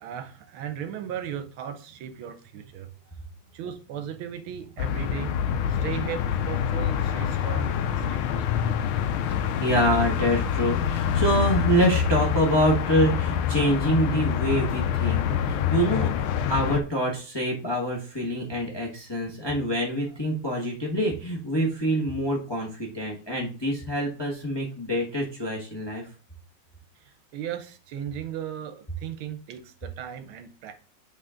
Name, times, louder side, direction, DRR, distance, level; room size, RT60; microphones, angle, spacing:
voice 1, 0.0-2.9 3.5-8.7 27.0-30.8, right 9 dB, 75° right, 9 dB, 1.5 m, -37 dB
sound 1, 4.8-16.8, left 8 dB, 80° left, 1.4 m, -26 dB
voice 2, 9.6-26.0, equal, 15° left, -2 dB, 0.9 m, -26 dB
8.3 x 3.8 x 3.7 m, 0.38 s
omnidirectional pair, 2.3 m